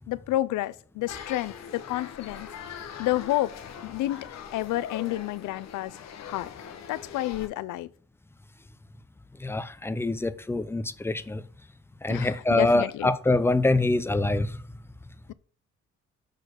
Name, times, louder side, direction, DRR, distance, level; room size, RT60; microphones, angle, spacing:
voice 1, 0.1-2.5 3.0-3.5 3.8-6.5 6.9-7.9 12.1-13.1, left 16 dB, 85° left, 0.5 m, -30 dB
sound 1, 1.1-7.5, left 7 dB, 60° left, 1.1 m, -42 dB
voice 2, 9.4-11.4 12.0-14.6, left 2 dB, 10° left, 0.6 m, -25 dB
6.5 x 4.3 x 6.6 m
cardioid pair, 90°, 30 cm